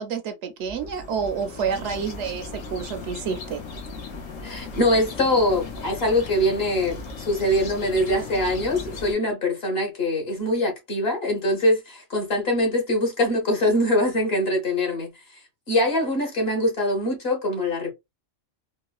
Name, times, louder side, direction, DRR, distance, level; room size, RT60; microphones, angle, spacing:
voice 1, 0.0-3.6, right 6 dB, 70° right, 0.8 m, -29 dB
sound 1, 0.6-9.1, left 3 dB, 85° left, 1.2 m, -37 dB
voice 2, 4.4-15.1 15.7-17.9, left 1 dB, 50° left, 1.4 m, -23 dB
3.8 x 2.1 x 2.3 m
omnidirectional pair, 1.3 m